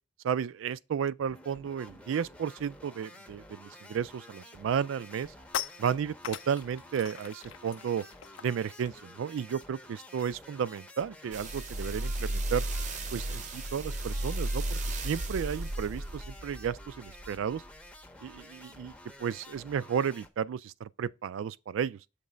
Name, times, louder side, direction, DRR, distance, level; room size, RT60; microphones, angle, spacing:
voice 1, 0.2-5.3 5.8-8.0 8.4-12.6 13.1-17.6 18.2-18.9 19.2-22.0, right 7 dB, 75° right, 0.3 m, -33 dB
sound 1, 1.3-20.3, left 1 dB, 5° left, 0.6 m, -51 dB
sound 2, 5.2-10.7 11.0-11.2 11.5-16.5, left 9 dB, 75° left, 0.5 m, -44 dB
sound 3, 11.3-17.8 18.4-18.5, right 1 dB, 40° right, 0.6 m, -34 dB
6.7 x 3.1 x 5.0 m
head